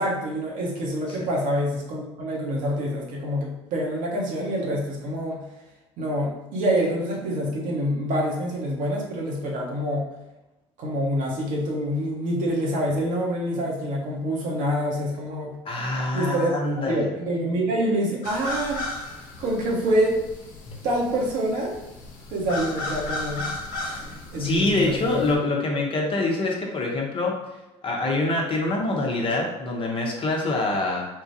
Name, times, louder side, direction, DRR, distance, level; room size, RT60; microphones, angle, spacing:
voice 1, 0.0-5.4 6.0-10.1 10.8-15.5 16.1-16.5 16.8-18.9 19.4-20.2 20.8-21.8 22.3-24.0 24.3-25.2, equal, 60° right, -2 dB, 1.1 m, -26 dB
voice 2, 15.6-17.1 20.7-20.8 24.4-27.4 27.8-31.1, left 2 dB, 35° left, 0 dB, 0.9 m, -25 dB
sound 1, 18.2-25.4, left 2 dB, 65° left, 0.9 m, -35 dB
3.7 x 2.4 x 2.7 m, 0.98 s
hypercardioid pair, 65°, 15 cm